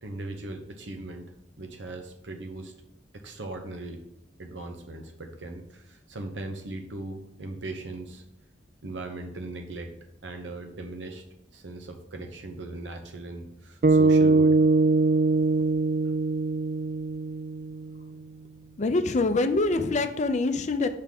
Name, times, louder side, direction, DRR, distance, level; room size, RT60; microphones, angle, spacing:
voice 1, 0.0-2.7 3.1-4.0 4.4-8.2 8.8-9.9 10.2-11.2 11.5-14.6 16.0-16.1, right 2 dB, 75° right, 5 dB, 0.9 m, -39 dB
sound 1, 13.8-18.2, right 3 dB, 50° right, 0.3 m, -22 dB
voice 2, 18.8-20.9, left 3 dB, 40° left, 9 dB, 0.5 m, -25 dB
6.7 x 3.6 x 5.9 m, 0.78 s
head